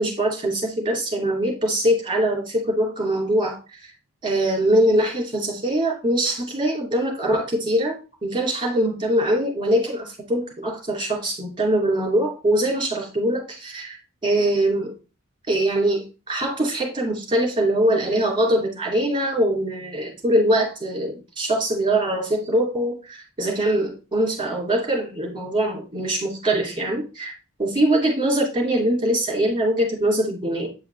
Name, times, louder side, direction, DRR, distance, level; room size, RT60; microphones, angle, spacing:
voice 1, 0.0-3.9 4.2-14.0 14.2-14.9 15.5-27.3 27.6-30.7, right 1 dB, 20° right, 0 dB, 2.7 m, -22 dB
8.9 x 4.8 x 3.3 m, 0.31 s
head